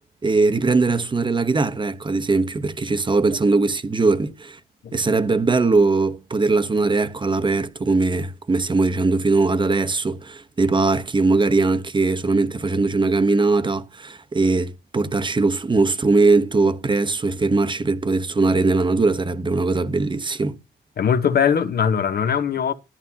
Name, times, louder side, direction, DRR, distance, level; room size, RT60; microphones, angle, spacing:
voice 1, 0.2-4.6 4.9-20.6, right 3 dB, 25° right, 1.0 m, -20 dB
voice 2, 21.0-22.7, left 7 dB, 50° left, 1.0 m, -20 dB
11.5 x 11.0 x 2.8 m
cardioid pair, 90°, 20 cm